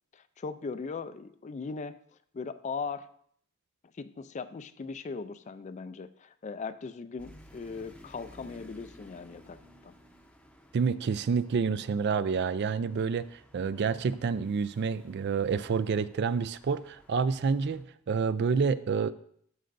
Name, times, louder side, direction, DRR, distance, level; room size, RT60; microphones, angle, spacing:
voice 1, 0.1-2.0 2.3-3.1 4.0-9.9, left 4 dB, 30° left, 13 dB, 0.3 m, -39 dB
sound 1, 7.2-17.8, equal, 5° left, 0.7 m, -56 dB
voice 2, 10.7-19.1, right 5 dB, 50° right, 14 dB, 0.3 m, -28 dB
12.5 x 7.9 x 2.6 m, 0.65 s
head